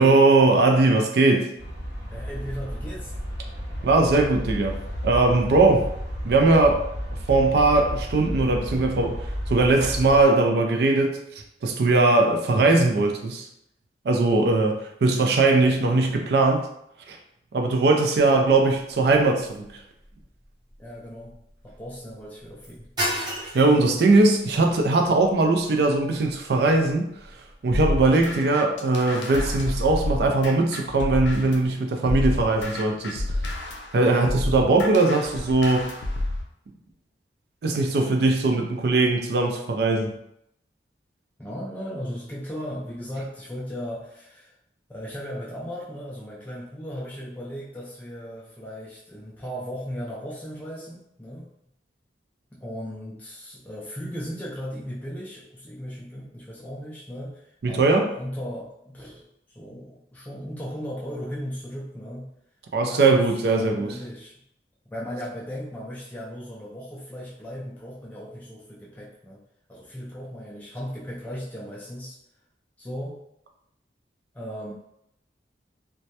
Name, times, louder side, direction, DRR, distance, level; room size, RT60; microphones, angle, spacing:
voice 1, 0.0-1.5 3.8-5.9 6.2-6.9 7.3-11.2 11.6-13.5 14.0-16.7 17.1-17.2 17.5-19.7 23.5-27.1 27.6-33.4 33.9-35.9 37.6-40.2 57.6-58.1 62.7-64.0, right 3 dB, 65° right, 3 dB, 0.4 m, -20 dB
sound 1, 1.6-10.2, equal, 80° right, 0.7 m, -32 dB
voice 2, 2.1-3.1 20.8-21.3 21.6-22.9 41.4-44.5 44.9-51.5 52.5-62.3 62.9-63.2 63.5-64.3 64.9-69.4 69.7-72.2 72.8-73.2 74.3-74.7, equal, 10° left, -6 dB, 0.3 m, -36 dB
sound 2, 18.2-28.3, equal, 25° right, 0.6 m, -38 dB
sound 3, 27.7-31.7 32.1-36.4, left 1 dB, 80° left, 0.4 m, -29 dB
2.2 x 2.0 x 2.7 m, 0.76 s
head